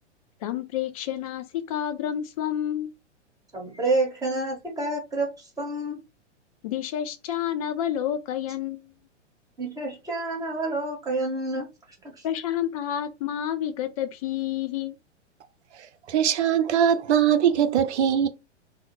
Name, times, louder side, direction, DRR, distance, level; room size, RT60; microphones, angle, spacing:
voice 1, 0.4-2.9 6.6-8.9 12.2-15.0, left 10 dB, 30° left, 0.4 m, -29 dB
voice 2, 3.5-6.0 9.6-11.7 12.2-12.3, right 2 dB, 10° right, 1.1 m, -28 dB
voice 3, 16.1-18.3, right 9 dB, 70° right, 0.5 m, -21 dB
2.4 x 2.1 x 3.0 m
figure-of-eight pair, 105°, 36 cm